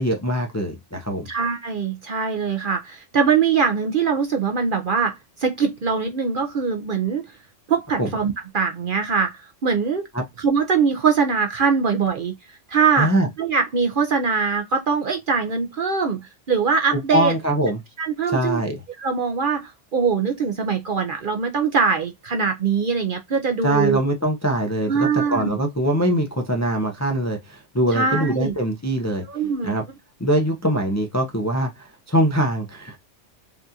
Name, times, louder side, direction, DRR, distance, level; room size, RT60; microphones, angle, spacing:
voice 1, 0.0-1.3 8.0-8.1 10.1-10.2 13.0-13.3 16.9-17.8 18.3-18.8 23.6-29.2 29.6-29.8 30.2-33.0, right 1 dB, 20° left, 0.5 m, -22 dB
voice 2, 1.3-7.2 7.7-10.1 10.4-12.3 12.7-13.1 13.4-17.3 18.0-18.6 19.0-24.0 24.9-25.6 27.9-28.5 29.3-29.7, right 5 dB, 55° right, 0.7 m, -22 dB
5.1 x 2.5 x 2.8 m
omnidirectional pair, 1.3 m